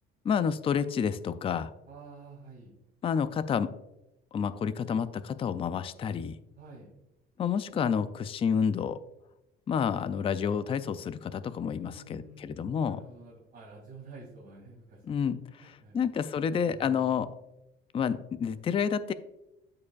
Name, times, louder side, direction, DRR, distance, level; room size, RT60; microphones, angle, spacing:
voice 1, 0.2-1.7 3.0-3.7 4.3-6.4 7.4-9.0 9.7-13.0 15.1-17.3 17.9-19.1, left 7 dB, 25° left, 13 dB, 0.3 m, -29 dB
voice 2, 1.9-2.7 6.6-7.0 11.8-15.3 15.6-16.0 16.4-17.2, right 3 dB, 50° right, -6 dB, 2.6 m, -50 dB
13.0 x 4.8 x 2.4 m, 0.89 s
cardioid pair, 125°, 20 cm